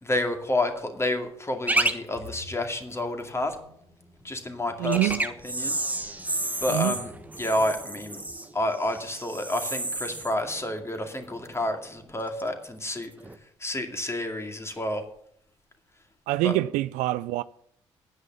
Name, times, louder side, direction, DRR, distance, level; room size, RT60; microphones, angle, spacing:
voice 1, 0.0-3.6 4.2-5.8 6.6-7.1 7.4-8.2 8.5-13.1 13.6-15.0 16.4-16.6, left 1 dB, 20° left, 2.3 m, -29 dB
sound 1, 1.7-1.9 2.3-2.4 4.8-11.7 12.0-12.5 13.2-13.4, right 2 dB, 10° right, 1.4 m, -31 dB
sound 2, 2.1-8.1, left 3 dB, 40° left, 4.0 m, -51 dB
voice 2, 4.8-5.2 6.7-7.0 16.3-17.4, right 18 dB, 60° right, 0.4 m, -25 dB
9.6 x 9.1 x 6.7 m
figure-of-eight pair, 45°, 15 cm